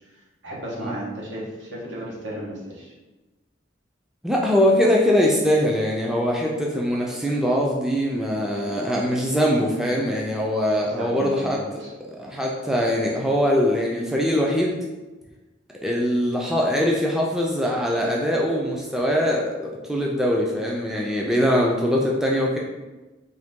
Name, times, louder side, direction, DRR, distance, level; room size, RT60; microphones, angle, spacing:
voice 1, 0.1-2.9 10.8-11.9, equal, 75° right, -5 dB, 1.3 m, -34 dB
voice 2, 4.2-11.6 12.1-14.8 15.8-22.6, equal, 5° right, -2 dB, 0.4 m, -22 dB
3.9 x 2.8 x 3.6 m, 1.1 s
head